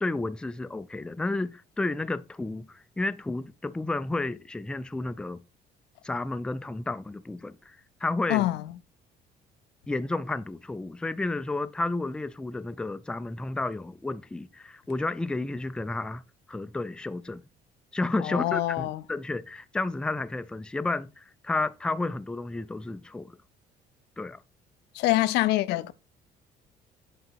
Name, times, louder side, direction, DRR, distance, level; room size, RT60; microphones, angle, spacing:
voice 1, 0.0-5.4 6.0-8.5 9.9-16.2 16.5-17.4 17.9-23.4 24.2-24.4, left 2 dB, 5° left, 0.3 m, -31 dB
voice 2, 8.3-8.7 18.2-19.0 24.9-25.9, left 16 dB, 90° left, 0.5 m, -25 dB
8.0 x 3.9 x 4.4 m
cardioid pair, 110°, 17 cm